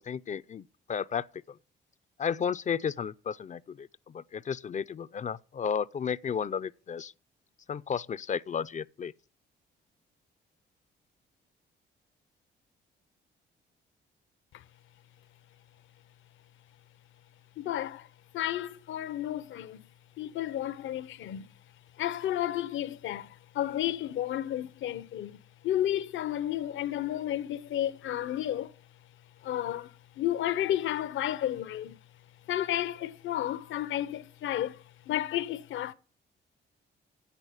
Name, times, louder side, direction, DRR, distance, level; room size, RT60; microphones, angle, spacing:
voice 1, 0.0-1.6 2.2-7.1 7.7-9.1, left 7 dB, 40° left, 0.5 m, -33 dB
voice 2, 17.6-18.1 18.3-19.8 20.2-21.5 22.0-25.4 25.6-28.7 29.4-32.0 32.5-35.9, left 12 dB, 75° left, 0.8 m, -32 dB
8.6 x 8.3 x 8.6 m
cardioid pair, 90°, 20 cm